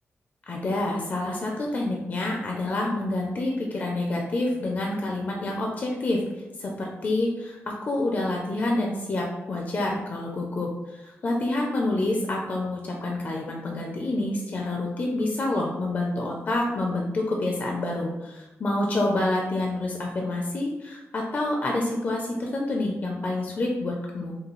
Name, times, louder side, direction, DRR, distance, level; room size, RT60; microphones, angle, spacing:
voice 1, 0.5-6.2 6.6-7.6 7.9-24.4, left 2 dB, 40° left, 0 dB, 0.4 m, -28 dB
5.3 x 2.3 x 3.0 m, 1.1 s
wide cardioid pair, 160°, 5 cm